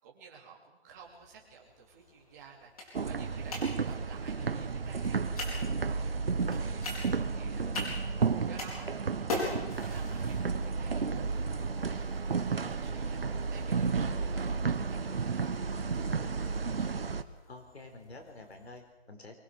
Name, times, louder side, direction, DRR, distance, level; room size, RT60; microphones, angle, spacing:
voice 1, 0.0-7.7 8.4-16.8, right 6 dB, 15° right, -3 dB, 3.0 m, -54 dB
sound 1, 0.9-18.8, left 2 dB, 35° left, 5.0 m, -44 dB
sound 2, 2.9-17.2, right 5 dB, 65° right, 1.3 m, -32 dB
voice 2, 17.5-19.4, left 2 dB, 75° left, 4 dB, 5.1 m, -49 dB
23.5 x 18.5 x 6.5 m, 1.1 s
hypercardioid pair, 175°, 32 cm